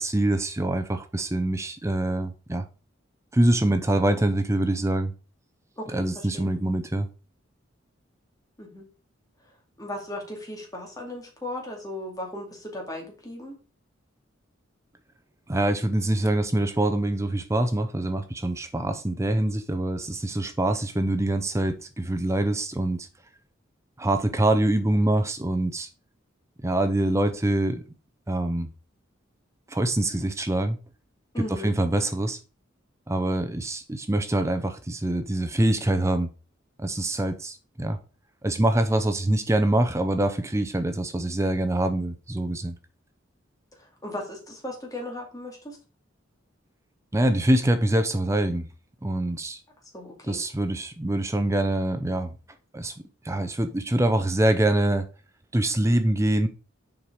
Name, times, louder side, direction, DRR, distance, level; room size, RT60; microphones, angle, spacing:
voice 1, 0.0-2.6 3.3-5.1 5.9-7.1 15.5-23.1 24.0-25.9 26.6-27.8 28.3-28.7 29.7-30.8 31.5-32.4 33.1-36.3 36.8-38.0 38.4-42.7 47.1-48.7 49.0-49.6 50.3-52.3 52.7-52.9 53.2-55.1 55.5-56.5, right 1 dB, 15° right, 0.6 m, -24 dB
voice 2, 5.8-6.5 8.6-8.9 9.8-13.6 31.3-31.7 43.8-45.8 49.9-50.4, left 1 dB, 20° left, 2.3 m, -36 dB
7.2 x 4.7 x 4.9 m
head